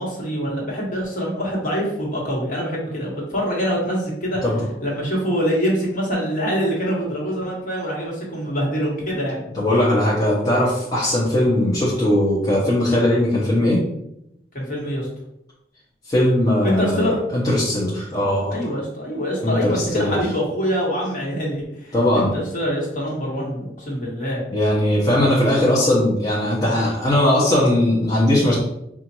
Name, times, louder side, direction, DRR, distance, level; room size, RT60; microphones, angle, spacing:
voice 1, 0.0-4.4 4.8-9.4 14.5-15.1 16.6-17.2 18.5-24.4, equal, 45° left, -4 dB, 1.3 m, -25 dB
voice 2, 9.5-13.8 16.1-18.6 19.4-20.2 21.9-22.3 24.5-28.5, left 1 dB, 20° left, -7 dB, 0.8 m, -19 dB
4.9 x 2.4 x 2.9 m, 0.81 s
head